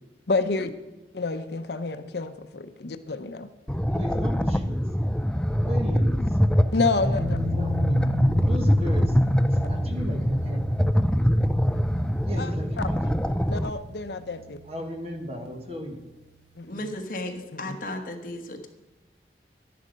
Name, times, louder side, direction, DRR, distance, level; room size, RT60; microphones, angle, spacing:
voice 1, 0.3-0.7 1.1-3.5 6.7-7.4 12.4-12.9 13.5-14.6 16.6-16.9 17.5-17.8, left 3 dB, 70° left, 10 dB, 0.7 m, -29 dB
sound 1, 3.7-13.7, equal, 5° left, 0.3 m, -23 dB
voice 2, 3.9-4.8 5.6-6.3 7.1-7.2 7.5-9.1 9.3-10.6 12.3-13.1 14.7-16.0, equal, 35° right, 4 dB, 1.6 m, -36 dB
sound 2, 7.2-16.1, equal, 55° right, 3.6 m, -38 dB
voice 3, 16.7-18.7, left 1 dB, 50° left, 4 dB, 1.4 m, -35 dB
11.0 x 10.5 x 5.2 m, 1.1 s
head